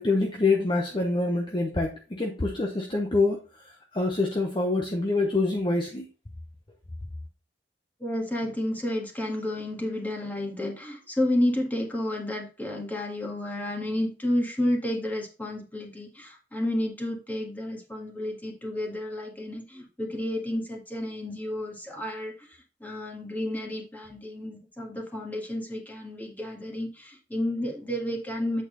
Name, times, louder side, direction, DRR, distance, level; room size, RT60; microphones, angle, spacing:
voice 1, 0.0-6.1, left 3 dB, 25° left, 1 dB, 0.8 m, -26 dB
voice 2, 8.0-22.5 22.8-28.6, left 1 dB, 10° left, -1 dB, 1.8 m, -31 dB
8.4 x 4.3 x 4.0 m, 0.36 s
head